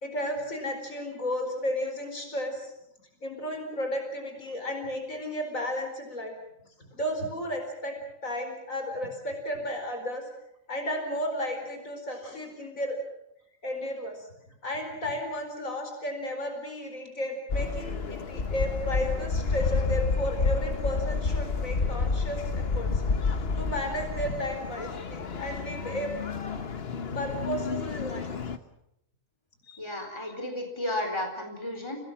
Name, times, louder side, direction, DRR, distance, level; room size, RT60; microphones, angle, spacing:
voice 1, 0.0-2.7 3.2-6.3 6.9-8.0 8.2-10.2 10.7-13.0 13.6-14.3 14.6-23.0 23.6-26.1 27.1-28.3 29.6-30.1, equal, 85° left, 4 dB, 4.9 m, -33 dB
sound 1, 17.5-28.6, left 4 dB, 50° left, 1.4 m, -30 dB
voice 2, 29.8-32.1, left 1 dB, 20° left, 3 dB, 4.2 m, -33 dB
30.0 x 19.0 x 7.4 m, 0.79 s
omnidirectional pair, 1.4 m